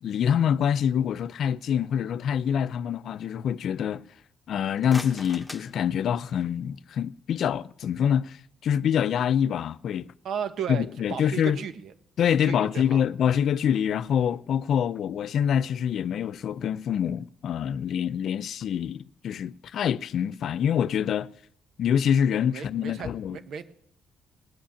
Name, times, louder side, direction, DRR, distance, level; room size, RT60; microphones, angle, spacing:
voice 1, 0.0-4.0 4.5-10.1 10.7-11.6 12.2-21.3 21.8-23.4, left 8 dB, 65° left, 0.5 m, -25 dB
sound 1, 4.6-6.6, left 1 dB, 5° left, 1.4 m, -42 dB
voice 2, 10.2-11.9 12.2-13.0 22.5-23.6, right 7 dB, 70° right, 1.2 m, -35 dB
19.0 x 8.8 x 7.1 m
cardioid pair, 90°, 0 cm